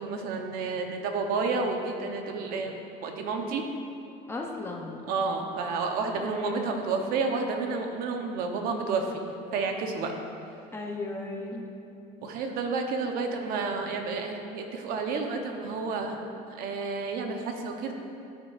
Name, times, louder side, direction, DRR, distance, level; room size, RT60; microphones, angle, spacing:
voice 1, 0.0-2.8 3.0-3.6 5.1-9.2 9.5-10.1 12.2-16.2 16.5-17.9, right 4 dB, 60° right, 4 dB, 0.9 m, -30 dB
voice 2, 4.3-5.0 6.2-6.8 10.7-11.7, left 2 dB, 15° left, 0 dB, 0.6 m, -35 dB
13.5 x 6.5 x 2.5 m, 2.7 s
cardioid pair, 155°, 17 cm